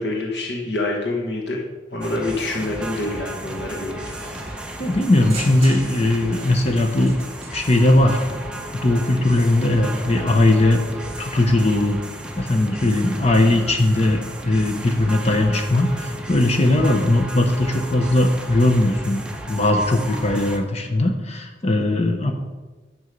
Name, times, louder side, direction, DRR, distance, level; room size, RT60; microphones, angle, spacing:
voice 1, 0.0-1.6 1.9-4.2, left 2 dB, 70° left, 0 dB, 1.4 m, -26 dB
sound 1, 2.0-20.6, right 1 dB, 5° right, 0.8 m, -34 dB
sound 2, 2.5-4.9 9.4-11.7, equal, 20° left, 3.2 m, -42 dB
sound 3, 4.0-8.0, right 3 dB, 35° right, 2.3 m, -40 dB
voice 2, 4.8-7.1 7.5-8.2 8.7-10.8 11.2-12.0 12.4-19.2 19.5-22.3, left 1 dB, 35° left, 4 dB, 0.8 m, -19 dB
9.6 x 6.2 x 5.3 m, 1.2 s
head